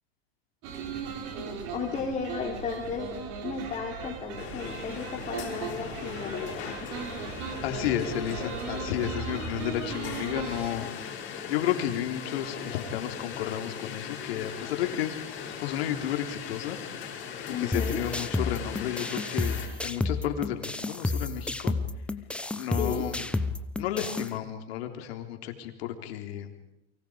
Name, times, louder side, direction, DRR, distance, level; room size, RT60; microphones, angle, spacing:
sound 1, 0.6-10.7, right 6 dB, 50° right, 4.4 m, -37 dB
voice 1, 0.9-3.1 3.4-7.2 17.5-18.0 22.8-23.1, left 5 dB, 25° left, -1 dB, 3.7 m, -35 dB
sound 2, 4.4-19.7, left 7 dB, 40° left, 6.0 m, -39 dB
voice 2, 7.6-10.9 11.5-15.2 15.6-16.8 17.6-19.6 19.8-21.7 22.5-23.3 23.8-26.7, left 11 dB, 80° left, 5 dB, 3.6 m, -32 dB
sound 3, 17.7-24.3, left 2 dB, 5° left, 0.9 m, -31 dB
30.0 x 24.0 x 5.1 m, 0.81 s
supercardioid pair, 145°, 31 cm